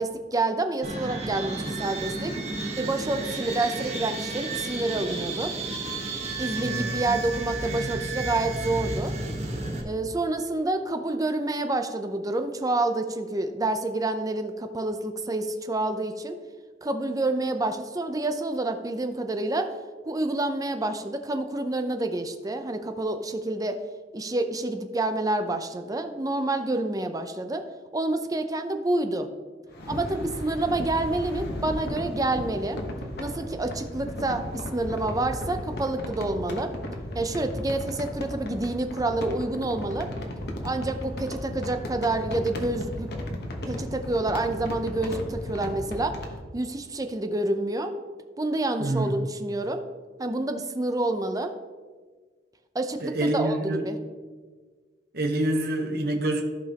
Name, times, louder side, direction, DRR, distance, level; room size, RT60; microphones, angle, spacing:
voice 1, 0.0-2.3 2.8-5.5 6.4-9.1 9.8-16.3 16.8-19.7 20.1-23.8 24.1-27.6 27.9-29.3 29.9-32.8 33.2-36.7 37.1-40.1 40.6-43.1 43.7-46.2 46.5-47.9 48.4-49.8 50.2-51.5 52.7-54.0, right 2 dB, 20° right, 7 dB, 0.6 m, -28 dB
sound 1, 0.8-9.8, right 3 dB, 40° right, 1.3 m, -32 dB
voice 2, 6.6-7.2 48.8-49.1 53.0-53.8 55.1-56.4, right 1 dB, 60° right, 3 dB, 1.0 m, -27 dB
sound 2, 29.7-46.4, left 1 dB, 65° left, 1.2 m, -35 dB
14.5 x 5.3 x 2.9 m, 1.4 s
head